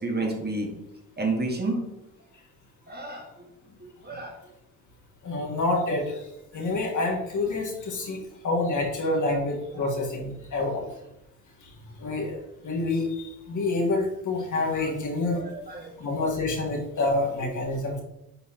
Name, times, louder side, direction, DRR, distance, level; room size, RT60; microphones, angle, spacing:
voice 1, 0.0-0.7 1.2-1.8 2.9-3.3 4.0-4.3 14.7-14.9 15.3-15.9, right 2 dB, 25° right, 1 dB, 1.6 m, -30 dB
voice 2, 5.2-6.2 6.5-10.9 12.0-12.4 12.6-15.4 16.0-18.0, left 2 dB, 50° left, 0 dB, 1.6 m, -27 dB
9.2 x 4.2 x 2.9 m, 0.87 s
cardioid pair, 75°, 37 cm